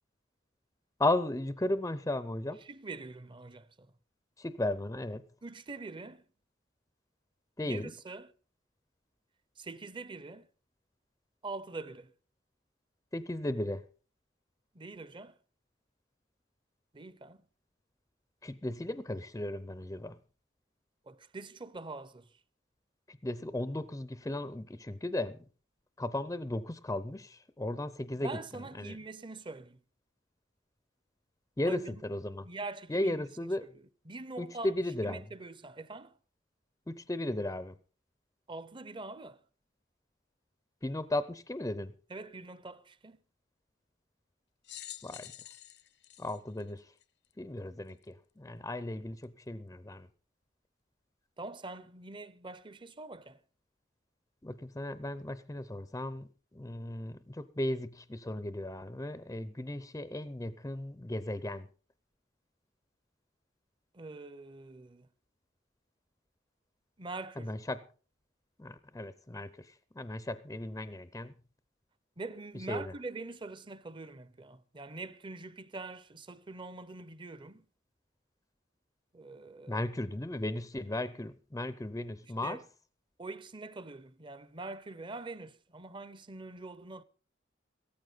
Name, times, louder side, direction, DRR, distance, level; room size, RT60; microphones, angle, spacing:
voice 1, 1.0-2.6 4.4-5.2 7.6-7.9 13.1-13.8 18.4-20.2 23.1-25.4 26.0-29.0 31.6-32.5 32.9-33.7 34.4-35.2 36.9-37.8 40.8-41.9 45.0-45.3 46.2-46.9 47.4-50.1 54.4-61.7 67.4-67.8 68.6-71.3 72.5-72.9 79.7-82.6, left 1 dB, 15° left, 0.6 m, -35 dB
voice 2, 2.6-3.9 5.4-6.2 7.6-8.3 9.6-10.5 11.4-12.1 14.7-15.3 16.9-17.4 21.1-22.3 28.2-29.8 31.7-32.0 32.4-33.5 34.1-34.7 35.0-36.1 38.5-39.4 42.1-43.2 51.4-53.4 63.9-65.1 67.0-67.5 72.2-77.7 79.1-79.9 82.4-82.6 83.2-87.0, right 3 dB, 25° right, 0.7 m, -44 dB
sound 1, 44.6-47.3 48.0-48.1 49.2-49.3, left 12 dB, 60° left, 0.7 m, -48 dB
16.5 x 14.0 x 4.0 m
head